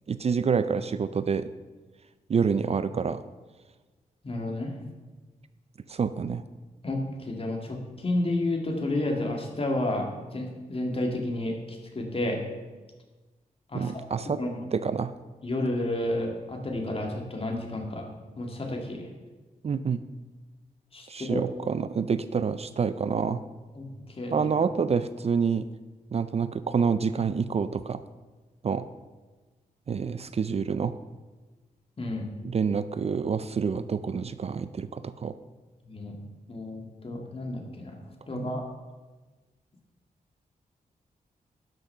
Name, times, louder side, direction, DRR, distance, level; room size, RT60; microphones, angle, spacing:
voice 1, 0.1-1.5 2.3-3.2 5.9-6.4 13.7-14.4 14.7-15.1 19.6-20.0 21.1-23.4 24.3-25.7 26.1-28.0 28.6-28.9 29.9-30.9 32.4-35.3 38.3-38.6, right 6 dB, 45° right, 13 dB, 0.4 m, -27 dB
voice 2, 4.2-4.7 6.8-7.0 7.3-10.1 10.3-11.6 12.0-12.4 13.7-13.8 14.3-14.5 15.4-18.0 18.4-19.1 20.9-21.5 23.7-23.9 24.2-24.5 32.0-32.3 35.9-36.2 36.5-38.0 38.3-38.6, left 1 dB, 40° left, 1 dB, 2.1 m, -30 dB
12.0 x 6.0 x 5.7 m, 1.3 s
wide cardioid pair, 90°, 15 cm